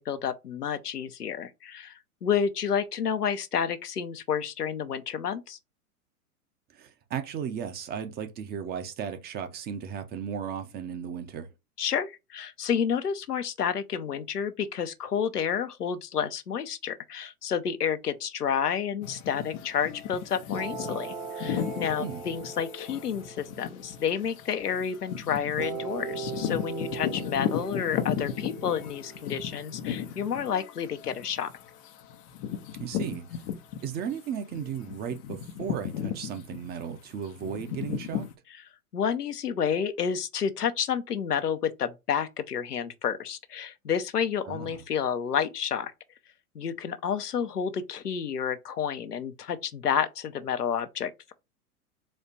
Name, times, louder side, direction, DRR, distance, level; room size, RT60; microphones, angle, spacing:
voice 1, 0.0-5.6 11.8-31.5 38.9-45.9 46.5-51.3, left 7 dB, 85° left, 0.7 m, -30 dB
voice 2, 6.7-11.5 22.0-22.2 32.8-33.3 33.8-38.3 44.5-44.8, right 7 dB, 20° right, 0.6 m, -35 dB
sound 1, 19.0-34.1 34.5-38.3, left 9 dB, 25° left, 0.4 m, -36 dB
sound 2, 20.5-24.9 25.6-30.5, right 5 dB, 35° right, 1.1 m, -40 dB
4.2 x 2.4 x 4.5 m
figure-of-eight pair, 100°, 45 cm